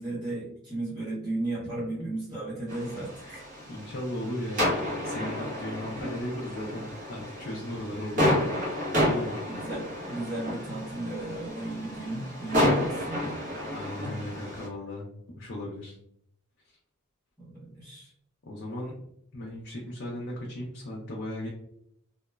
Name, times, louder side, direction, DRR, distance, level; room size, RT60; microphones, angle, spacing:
voice 1, 0.0-3.5 5.8-6.0 9.4-13.4 14.0-14.2 17.4-18.1, right 2 dB, 20° right, -9 dB, 1.3 m, -35 dB
sound 1, 2.7-14.7, left 1 dB, 35° right, 0.8 m, -31 dB
voice 2, 3.7-4.7 5.0-8.5 8.9-9.4 13.7-15.1 15.4-16.0 18.5-19.0 19.3-21.5, left 1 dB, 50° left, -3 dB, 0.5 m, -36 dB
2.9 x 2.1 x 2.3 m, 0.74 s
head